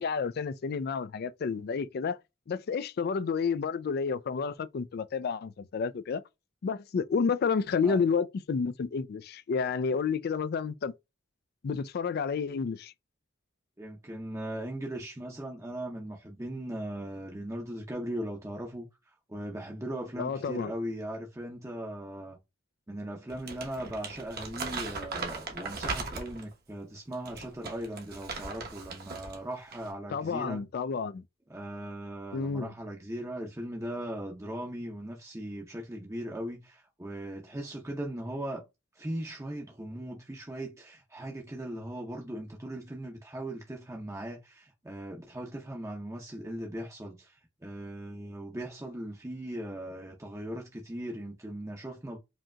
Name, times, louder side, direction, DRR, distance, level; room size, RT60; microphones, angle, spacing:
voice 1, 0.0-2.2 2.5-6.2 6.6-10.9 11.6-12.9 20.2-20.7 30.1-31.2 32.3-32.7, left 5 dB, 50° left, 0.3 m, -30 dB
voice 2, 13.8-22.4 22.9-30.6 31.5-38.6 38.9-52.2, right 1 dB, 15° right, 0.7 m, -39 dB
Crumpling crinkling, 23.3-26.5 27.1-29.4 29.7-29.9, right 4 dB, 50° right, 1.0 m, -38 dB
5.0 x 2.8 x 2.2 m
head